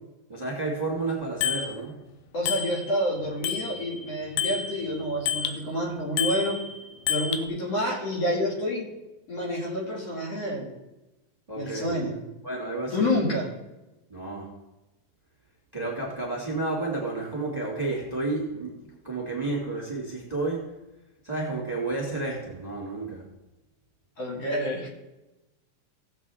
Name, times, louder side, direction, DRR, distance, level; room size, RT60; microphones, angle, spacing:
voice 1, 0.3-2.0 11.5-12.0 12.4-13.1 14.1-14.5 15.7-20.7 21.2-23.2, right 3 dB, 15° right, -4 dB, 2.1 m, -31 dB
Bicycle bell, 1.4-1.7 2.5-3.1 3.4-5.6 6.2-7.4, left 8 dB, 85° left, 2.3 m, -30 dB
voice 2, 2.3-6.6 7.1-8.9 9.3-10.7 11.6-12.2 12.9-13.5 24.2-24.9, left 1 dB, 50° left, -3 dB, 3.2 m, -28 dB
18.0 x 7.7 x 3.6 m, 1.0 s
omnidirectional pair, 3.9 m